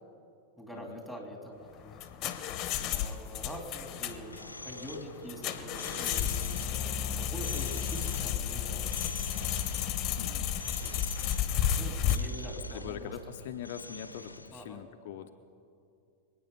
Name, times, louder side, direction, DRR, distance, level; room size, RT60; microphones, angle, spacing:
voice 1, 0.6-2.0 2.9-6.4 6.7-8.9 10.8-13.2 14.5-14.8, equal, 5° right, 2 dB, 2.9 m, -45 dB
sound 1, 1.7-12.2, left 9 dB, 35° left, 1.1 m, -32 dB
sound 2, 4.0-14.5, left 1 dB, 85° left, 0.8 m, -47 dB
voice 2, 12.7-15.3, left 10 dB, 50° left, 6 dB, 0.7 m, -43 dB
26.0 x 9.2 x 5.4 m, 2.5 s
figure-of-eight pair, 90°, 0 cm